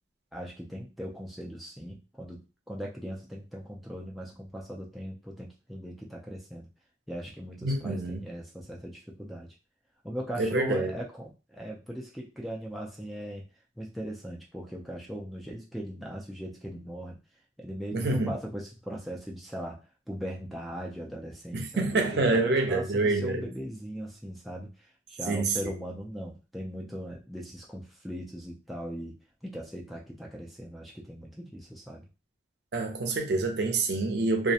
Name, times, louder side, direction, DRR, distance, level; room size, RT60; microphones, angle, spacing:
voice 1, 0.3-6.7 7.1-9.6 10.0-13.4 13.8-17.2 17.6-19.8 20.1-24.7 25.1-29.1 29.4-32.0, equal, ahead, 0.3 m, -39 dB
voice 2, 7.6-8.2 10.4-10.9 17.9-18.3 21.5-23.5 25.3-25.7 32.7-34.5, right 3 dB, 60° right, 0.5 m, -27 dB
2.4 x 2.1 x 2.7 m
head